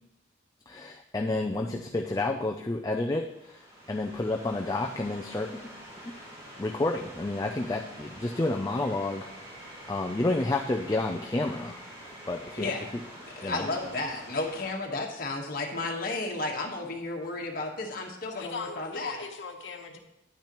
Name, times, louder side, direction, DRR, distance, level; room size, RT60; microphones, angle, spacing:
voice 1, 0.7-5.5 6.6-9.3 9.9-11.8 12.3-12.7 13.4-13.7, left 2 dB, 20° left, 2 dB, 0.4 m, -30 dB
sound 1, 3.2-14.7, equal, 30° right, 3.0 m, -46 dB
voice 2, 12.6-12.9 13.4-19.2, left 2 dB, 50° left, 0 dB, 1.4 m, -33 dB
voice 3, 18.3-20.0, left 4 dB, 70° left, 3 dB, 1.1 m, -38 dB
10.5 x 8.7 x 3.0 m, 0.87 s
head